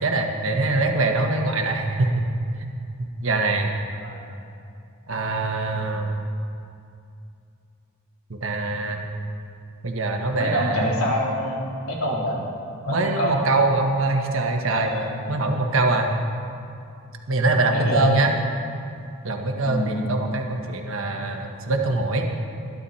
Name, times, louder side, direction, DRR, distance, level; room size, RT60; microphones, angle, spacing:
voice 1, 0.0-2.3 3.0-3.7 5.1-6.2 8.3-9.0 9.8-10.9 12.9-14.9 15.3-16.1 17.3-18.3 19.2-22.3, right 2 dB, 65° right, 2 dB, 1.4 m, -23 dB
voice 2, 10.4-11.6 11.9-12.4 12.8-13.3 14.7-15.4 17.7-18.2 19.7-20.0, equal, 80° left, -4 dB, 3.6 m, -26 dB
20.5 x 11.5 x 4.3 m, 2.5 s
head